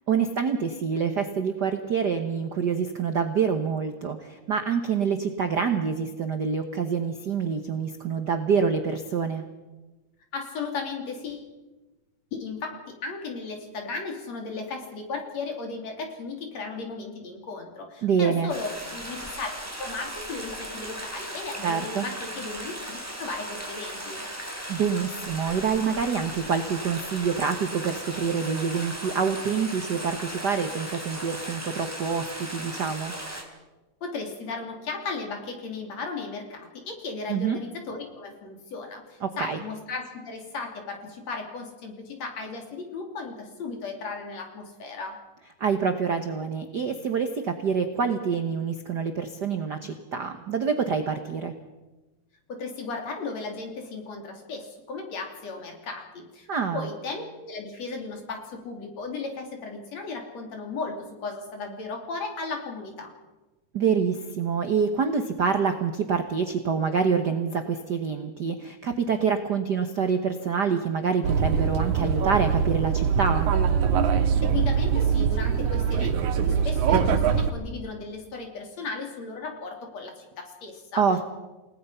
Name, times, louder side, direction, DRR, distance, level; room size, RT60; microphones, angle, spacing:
voice 1, 0.1-9.4 18.0-18.5 21.6-22.0 24.7-33.1 37.3-37.6 39.2-39.6 45.6-51.5 56.5-56.9 63.7-73.5 80.9-81.2, right 6 dB, 55° right, 7 dB, 1.1 m, -26 dB
voice 2, 10.3-11.5 12.3-24.2 34.0-45.2 52.5-56.5 56.7-63.1 74.4-81.0, left 4 dB, 60° left, 3 dB, 4.2 m, -36 dB
Stream, 18.5-33.4, right 1 dB, 5° right, 3.2 m, -37 dB
sound 1, 71.2-77.5, right 7 dB, 90° right, 2.7 m, -23 dB
29.0 x 18.0 x 5.7 m, 1.1 s
omnidirectional pair, 3.4 m